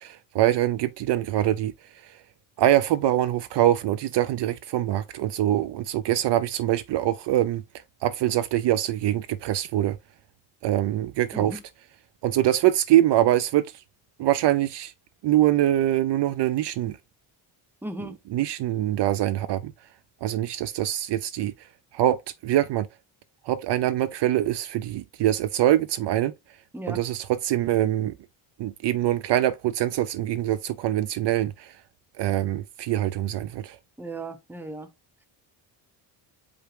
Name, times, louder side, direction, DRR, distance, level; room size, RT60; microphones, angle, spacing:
voice 1, 0.0-1.7 2.6-7.6 8.0-10.0 10.6-11.6 12.2-13.7 14.2-14.9 15.2-17.0 18.3-19.7 20.2-21.5 21.9-22.9 23.5-26.3 26.9-28.1 28.6-31.7 32.2-33.8, right 13 dB, 60° right, 0.5 m, -24 dB
voice 2, 11.3-11.6 17.8-18.2 26.7-27.0 34.0-34.9, right 2 dB, 5° right, 0.8 m, -36 dB
5.0 x 2.2 x 4.8 m
cardioid pair, 100°, 50 cm